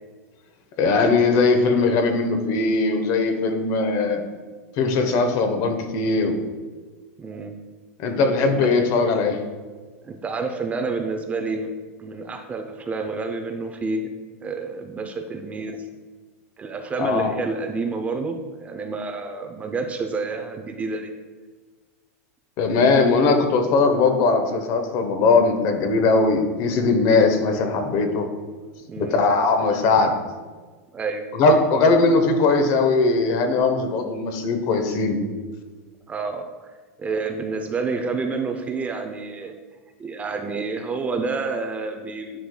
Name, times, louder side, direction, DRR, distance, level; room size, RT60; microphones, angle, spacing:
voice 1, 0.8-4.2 4.8-6.3 8.0-9.4 17.0-17.3 22.6-28.3 29.0-30.1 31.3-35.2, left 3 dB, 45° left, 5 dB, 1.0 m, -20 dB
voice 2, 7.2-7.5 8.5-8.7 10.0-11.7 12.0-14.1 14.4-15.8 16.6-21.1 28.9-29.2 30.9-31.2 36.1-36.7 37.0-39.5 40.0-42.4, right 4 dB, 15° right, 5 dB, 0.5 m, -29 dB
10.0 x 4.7 x 2.2 m, 1.4 s
supercardioid pair, 130°, 8 cm